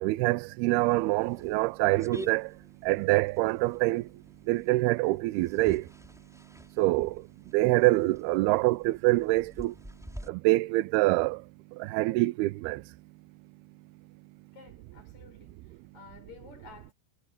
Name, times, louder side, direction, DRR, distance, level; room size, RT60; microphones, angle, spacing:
voice 1, 0.0-2.5 2.8-4.0 4.5-5.8 6.8-7.1 7.5-9.7 10.3-11.4 11.8-12.8, right 20 dB, 90° right, 2.2 m, -25 dB
sound 1, 0.7-10.3, equal, ahead, 4.4 m, -48 dB
voice 2, 14.5-16.9, left 4 dB, 40° left, 6.6 m, -52 dB
omnidirectional pair, 5.2 m